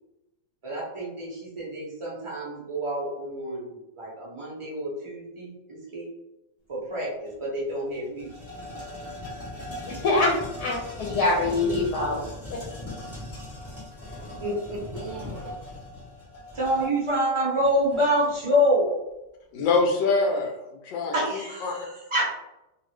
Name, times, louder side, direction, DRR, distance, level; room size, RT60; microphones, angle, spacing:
voice 1, 0.6-6.1 6.7-8.3 14.4-15.3 16.5-18.9 21.1-22.2, equal, 40° right, -5 dB, 0.4 m, -27 dB
sound 1, 7.3-7.4 7.7-18.4, left 1 dB, 15° left, 0.5 m, -39 dB
voice 2, 9.8-12.3, left 2 dB, 70° left, -3 dB, 1.2 m, -24 dB
voice 3, 19.5-20.5 20.8-21.9, left 3 dB, 90° left, 2 dB, 1.4 m, -25 dB
3.0 x 2.6 x 3.1 m, 0.94 s
omnidirectional pair, 1.9 m